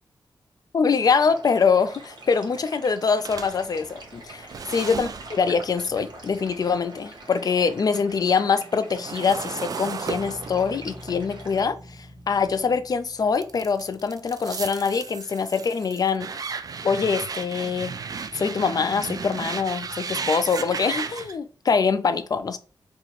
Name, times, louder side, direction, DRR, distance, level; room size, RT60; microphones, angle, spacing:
voice 1, 0.7-4.5 4.7-16.3 16.8-18.0 18.3-22.6, left 5 dB, 50° left, 0.4 m, -24 dB
sound 1, 0.9-11.6, right 2 dB, 65° right, 1.2 m, -44 dB
sound 2, 3.2-7.5 7.9-12.8 13.3-21.3, right 5 dB, 50° right, 0.3 m, -35 dB
sound 3, 10.0-14.9, left 1 dB, 20° right, 1.7 m, -47 dB
2.9 x 2.5 x 4.2 m
wide cardioid pair, 105°, 8 cm